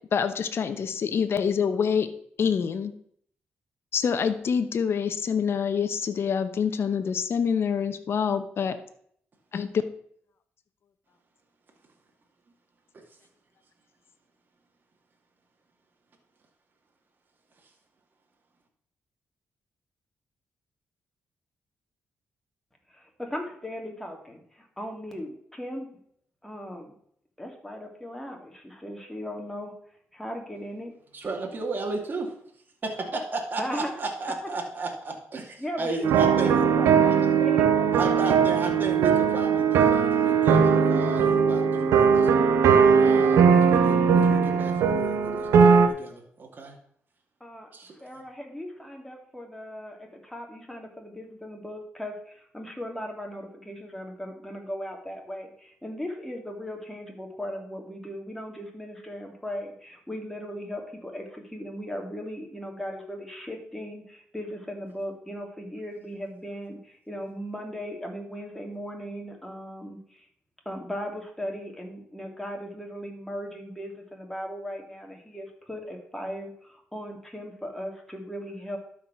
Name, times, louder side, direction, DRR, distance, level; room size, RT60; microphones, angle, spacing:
voice 1, 0.1-2.1 2.4-2.9 3.9-8.8 9.5-9.7, left 7 dB, 60° left, 9 dB, 1.0 m, -26 dB
voice 2, 22.9-25.9 26.4-26.9 27.4-29.7 30.1-30.9 33.6-33.9 35.6-37.1 37.4-38.4 47.4-47.7 48.0-70.3 70.6-78.8, equal, 5° left, 1 dB, 2.6 m, -38 dB
voice 3, 31.1-32.3 32.8-36.5 37.9-42.3 43.0-46.7 47.7-47.9, right 3 dB, 45° right, 0 dB, 2.3 m, -33 dB
sound 1, 36.0-45.9, right 6 dB, 90° right, 1.0 m, -20 dB
12.0 x 4.9 x 6.0 m, 0.65 s
cardioid pair, 80°, 5 cm